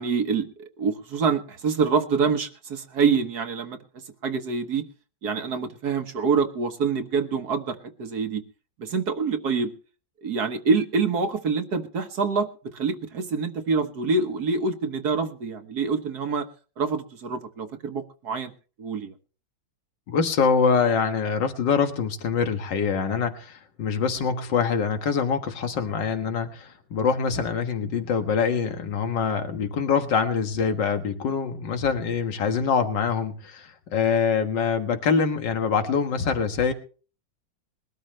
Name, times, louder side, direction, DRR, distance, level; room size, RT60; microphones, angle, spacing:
voice 1, 0.0-4.8 5.2-8.4 8.8-9.7 10.2-16.5 16.8-18.5 18.8-19.1, right 5 dB, 60° right, 7 dB, 1.6 m, -26 dB
voice 2, 20.1-36.7, left 6 dB, 70° left, 7 dB, 2.2 m, -24 dB
21.5 x 13.0 x 3.2 m, 0.38 s
omnidirectional pair, 2.1 m